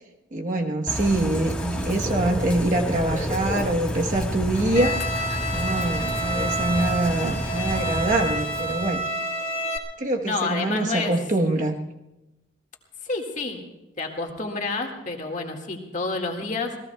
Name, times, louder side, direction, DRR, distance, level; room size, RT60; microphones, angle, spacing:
voice 1, 0.3-5.0 5.5-9.0 10.0-11.8, right 2 dB, 40° right, 2 dB, 1.1 m, -24 dB
Bird / Rain, 0.9-9.0, equal, 5° left, 1.3 m, -30 dB
Bowed string instrument, 4.8-9.8, right 1 dB, 80° left, 1.7 m, -29 dB
voice 2, 10.2-11.1 13.0-13.6 14.0-16.8, left 3 dB, 40° left, 2 dB, 1.9 m, -29 dB
28.0 x 18.0 x 2.3 m, 0.98 s
head